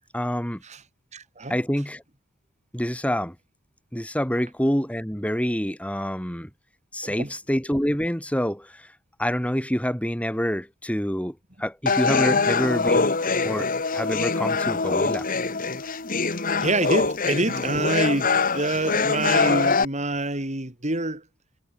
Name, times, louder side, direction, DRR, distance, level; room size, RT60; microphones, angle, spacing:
voice 1, 0.1-0.6 1.5-2.0 2.7-3.4 3.9-6.5 6.9-8.9 9.2-13.1 13.4-15.3, equal, 5° left, 5.5 m, -27 dB
voice 2, 1.1-1.6 7.0-7.3 12.3-12.4 16.6-21.2, right 2 dB, 35° right, 4.8 m, -26 dB
sound 1, 11.9-19.8, left 4 dB, 45° left, 1.8 m, -23 dB
head